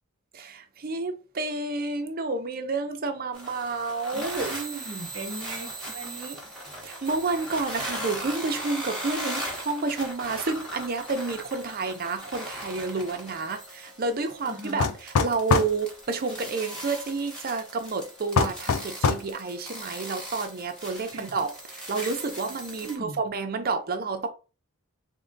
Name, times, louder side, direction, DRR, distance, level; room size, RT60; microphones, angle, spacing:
voice 1, 0.3-4.5 6.8-24.3, right 3 dB, 45° right, 0.6 m, -30 dB
sound 1, 3.3-23.0, right 1 dB, 5° left, 1.1 m, -38 dB
voice 2, 4.1-6.5 14.4-14.9 21.1-21.4 22.8-23.2, right 3 dB, 65° right, 0.9 m, -38 dB
sound 2, 14.8-15.8 18.4-19.3, left 5 dB, 75° left, 0.4 m, -23 dB
3.6 x 2.2 x 3.8 m
head